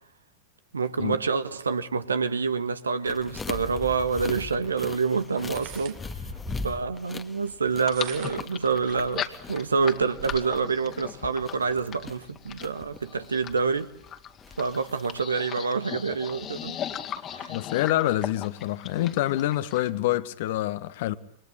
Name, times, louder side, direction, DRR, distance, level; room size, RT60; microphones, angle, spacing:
voice 1, 0.7-6.0 6.6-13.9 14.6-16.8 17.3-17.6, right 5 dB, 75° right, 1.7 m, -27 dB
sound 1, 3.1-15.2, left 3 dB, 15° left, 1.7 m, -41 dB
sound 2, 5.4-6.8 7.7-8.6 9.2-9.3 9.6-10.7, right 11 dB, 40° right, 2.0 m, -43 dB
sound 3, 7.8-19.9, left 10 dB, 30° left, 2.3 m, -38 dB
voice 2, 17.5-21.1, left 14 dB, 55° left, 1.6 m, -26 dB
28.5 x 24.5 x 8.0 m
figure-of-eight pair, 90°, 0 cm